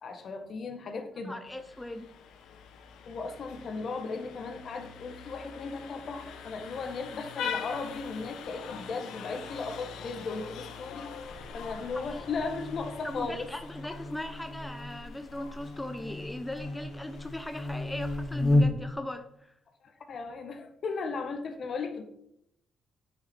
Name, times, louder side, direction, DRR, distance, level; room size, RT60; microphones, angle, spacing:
voice 1, 0.0-1.4 3.0-11.1 11.5-13.5 19.8-22.0, left 4 dB, 50° left, 6 dB, 1.3 m, -36 dB
voice 2, 1.2-2.1 11.9-12.2 13.0-19.5, left 1 dB, 10° left, 7 dB, 0.6 m, -39 dB
Vehicle horn car horn honking, 1.5-18.3, left 7 dB, 85° left, 1.0 m, -44 dB
Buzz, 11.2-19.0, left 2 dB, 30° left, 1.3 m, -33 dB
9.3 x 5.4 x 4.4 m, 0.79 s
cardioid pair, 90°, 0 cm